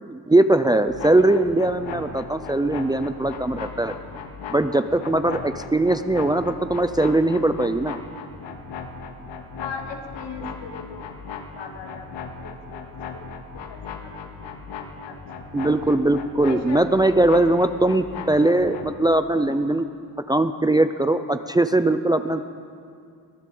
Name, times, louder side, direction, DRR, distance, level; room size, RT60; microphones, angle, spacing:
voice 1, 0.0-3.9 4.5-8.0 15.5-19.8 20.3-22.4, right 2 dB, 10° right, 9 dB, 0.5 m, -20 dB
sound 1, 0.9-19.0, left 5 dB, 85° left, 2.3 m, -37 dB
voice 2, 9.6-11.1 11.6-12.1 12.4-14.2 14.8-15.2 16.4-16.9 19.4-19.6, left 5 dB, 70° left, 3 dB, 2.9 m, -38 dB
23.0 x 15.5 x 7.8 m, 2.4 s
cardioid pair, 135°, 43 cm